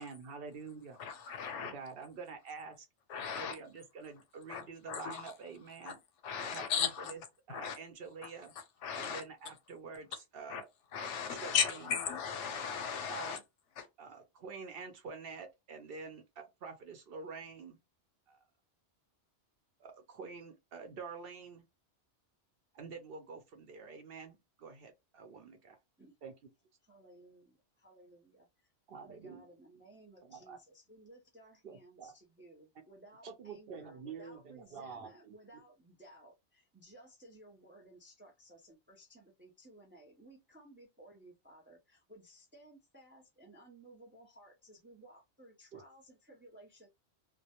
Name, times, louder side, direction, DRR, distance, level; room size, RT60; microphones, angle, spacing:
voice 1, 0.0-1.0 1.5-2.8 3.3-6.0 6.4-7.2 7.5-8.5 8.9-10.7 11.0-11.7 13.1-13.4 14.0-17.8 18.3-18.4 19.8-21.6 22.7-25.8 26.2-26.3 28.9-29.4 30.2-30.6 31.6-32.1 33.2-35.4 45.7-45.8, right 5 dB, 60° right, 0.7 m, -47 dB
voice 2, 1.0-1.7 3.1-3.6 4.5-5.3 5.9-6.0 6.2-7.1 7.5-7.8 8.2-8.3 8.8-9.2 10.5-10.6 10.9-13.4 13.8-13.9, left 7 dB, 90° left, 0.9 m, -36 dB
voice 3, 26.8-28.7 29.0-46.9, right 1 dB, 20° right, 0.3 m, -58 dB
2.2 x 2.1 x 2.7 m
omnidirectional pair, 1.2 m